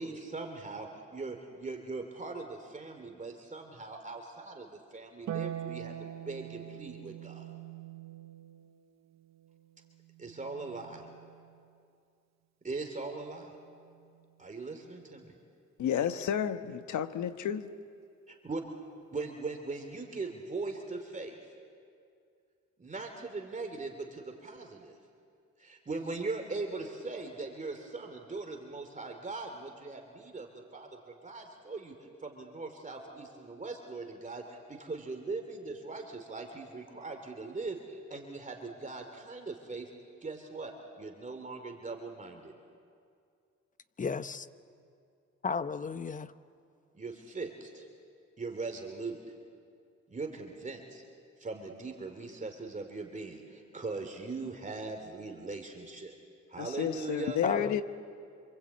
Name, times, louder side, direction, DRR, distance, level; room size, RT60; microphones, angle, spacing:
voice 1, 0.0-7.5 10.2-11.0 12.6-13.5 14.4-15.3 18.3-18.6 19.1-21.4 22.8-25.0 25.6-30.9 31.2-32.0 32.2-39.9 40.2-42.5 46.9-47.8 48.4-49.2 50.1-51.0 51.4-56.2 56.5-57.4, right 3 dB, 25° right, 2.7 m, -40 dB
Harp, 5.3-11.8 13.4-14.4, right 10 dB, 60° right, 1.0 m, -44 dB
voice 2, 15.8-17.7 56.6-57.8, left 9 dB, 70° left, 1.2 m, -31 dB
voice 3, 44.0-44.5 45.4-46.3 57.4-57.8, left 5 dB, 25° left, 0.8 m, -33 dB
27.0 x 25.5 x 8.5 m
cardioid pair, 90°, 30 cm